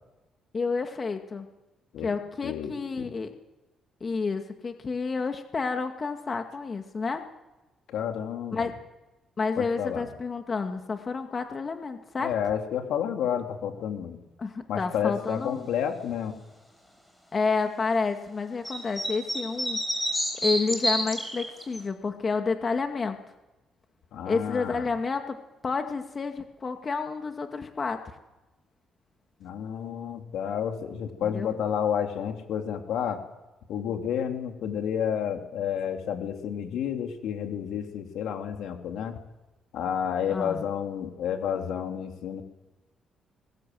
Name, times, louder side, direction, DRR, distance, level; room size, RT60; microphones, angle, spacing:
voice 1, 0.5-1.5 2.0-3.3 4.0-7.2 8.5-8.7 9.4-12.3 14.4-15.7 17.3-19.8 20.4-23.2 24.3-28.0 31.2-31.5 40.3-40.6, left 4 dB, 35° left, 5 dB, 2.1 m, -30 dB
voice 2, 2.4-3.1 7.9-8.7 9.6-10.1 12.2-14.2 14.7-16.3 24.1-24.9 29.4-33.2 33.7-39.2 39.7-42.4, left 8 dB, 80° left, 4 dB, 3.2 m, -30 dB
sound 1, 18.6-21.8, equal, 5° left, 6.6 m, -28 dB
26.0 x 21.5 x 7.8 m, 1.1 s
cardioid pair, 90°, 0 cm